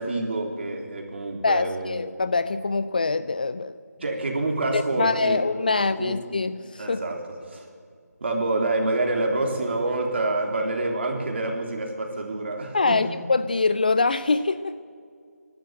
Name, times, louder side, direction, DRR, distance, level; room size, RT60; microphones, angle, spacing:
voice 1, 0.0-2.0 4.0-5.4 5.7-6.2 6.8-7.2 7.5-7.7 8.2-13.0, right 2 dB, 40° right, 2 dB, 3.6 m, -27 dB
voice 2, 1.4-3.8 4.7-7.0 12.7-14.8, left 3 dB, 30° left, 14 dB, 0.4 m, -24 dB
25.5 x 12.0 x 9.1 m, 2.1 s
figure-of-eight pair, 165°, 9 cm